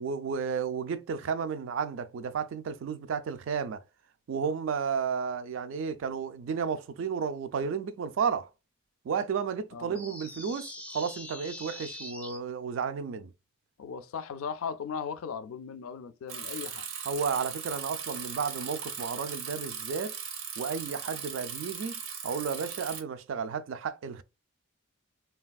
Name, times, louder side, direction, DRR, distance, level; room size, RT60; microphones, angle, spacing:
voice 1, 0.0-3.8 4.3-8.5 9.0-13.3 17.1-20.2 20.6-24.2, right 6 dB, 60° right, 0.3 m, -32 dB
sound 1, 9.9-12.4, left 2 dB, 5° left, 0.4 m, -43 dB
voice 2, 13.8-16.9, left 6 dB, 80° left, 0.4 m, -37 dB
Bicycle, 16.3-23.0, right 7 dB, 80° right, 0.7 m, -38 dB
3.3 x 2.3 x 2.2 m
head